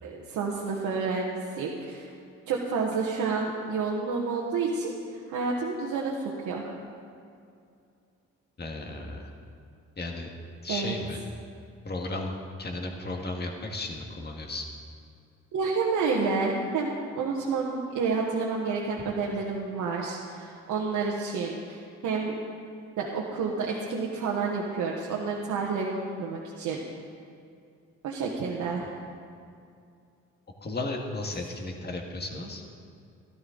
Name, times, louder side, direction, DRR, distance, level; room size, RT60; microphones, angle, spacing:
voice 1, 0.0-2.1 2.5-6.7 10.7-11.0 15.5-22.3 23.0-26.8 28.0-28.9, right 4 dB, 80° right, -3 dB, 1.3 m, -29 dB
voice 2, 8.6-9.3 10.0-10.3 10.6-11.2 11.8-14.6 30.6-32.6, left 2 dB, 35° left, 2 dB, 1.7 m, -34 dB
13.0 x 12.5 x 3.9 m, 2.4 s
cardioid pair, 90°, 30 cm